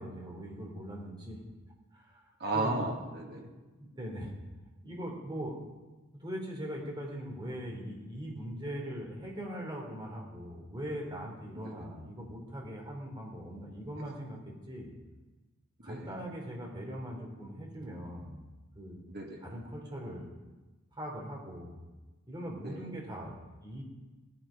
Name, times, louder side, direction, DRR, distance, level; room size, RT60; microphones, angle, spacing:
voice 1, 0.0-1.4 1.9-2.7 3.8-4.3 4.8-5.6 6.2-14.9 15.8-18.4 18.7-19.0 19.4-20.3 20.9-21.8 22.3-23.8, equal, 20° right, -1 dB, 3.4 m, -41 dB
voice 2, 2.4-3.5 11.6-11.7 15.8-16.1 19.1-19.5 22.6-22.8, right 2 dB, 50° right, 1 dB, 2.3 m, -34 dB
18.0 x 11.0 x 5.2 m, 1.2 s
head